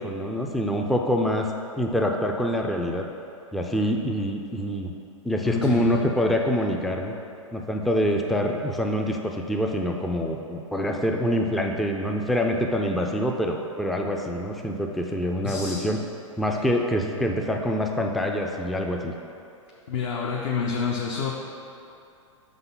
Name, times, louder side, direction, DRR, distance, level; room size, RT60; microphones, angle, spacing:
voice 1, 0.0-1.5 1.8-3.0 3.5-4.9 5.2-7.1 7.5-16.0 16.4-19.1, equal, ahead, 2 dB, 0.3 m, -25 dB
voice 2, 5.4-6.0 15.4-15.8 16.5-16.6 19.9-21.3, left 5 dB, 55° left, -2 dB, 0.7 m, -28 dB
5.3 x 4.0 x 5.7 m, 2.7 s
figure-of-eight pair, 105°, 17 cm